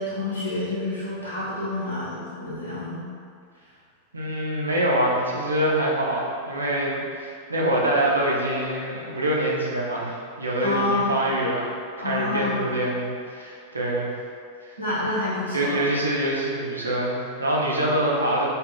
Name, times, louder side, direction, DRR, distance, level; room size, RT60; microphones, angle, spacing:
voice 1, 0.0-3.1 10.6-11.1 12.0-12.6 14.8-15.8, left 2 dB, 85° left, -9 dB, 0.9 m, -28 dB
voice 2, 4.1-11.7 12.0-14.1 14.7-14.8 15.5-18.5, right 1 dB, 80° right, -3 dB, 0.5 m, -25 dB
2.4 x 2.3 x 3.3 m, 2.2 s
figure-of-eight pair, 90°, 0 cm